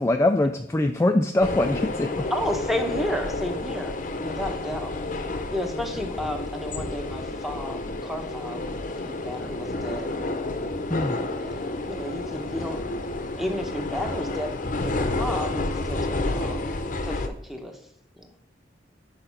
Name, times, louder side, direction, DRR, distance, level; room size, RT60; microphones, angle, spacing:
voice 1, 0.0-2.3 10.9-11.2, left 2 dB, 15° left, 5 dB, 0.3 m, -23 dB
sound 1, 1.4-17.3, left 2 dB, 45° left, 0.7 m, -30 dB
voice 2, 2.3-4.9 5.5-8.6 8.9-10.1 11.4-12.8 13.4-14.5 14.8-16.6 17.0-17.8 18.2-18.3, equal, ahead, 4 dB, 0.9 m, -32 dB
6.7 x 4.9 x 5.7 m, 0.75 s
head